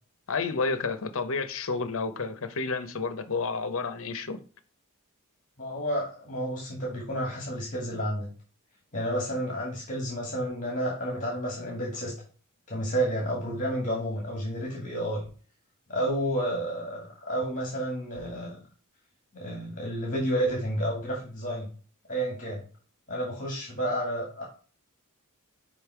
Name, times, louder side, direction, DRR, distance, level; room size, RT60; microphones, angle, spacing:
voice 1, 0.3-4.4, left 4 dB, 65° left, 0.8 m, -30 dB
voice 2, 5.6-8.3 8.9-12.1 12.7-15.3 15.9-18.6 19.3-21.7 22.1-22.6 23.1-24.4, right 1 dB, 35° left, 2.0 m, -30 dB
5.4 x 5.0 x 4.8 m
head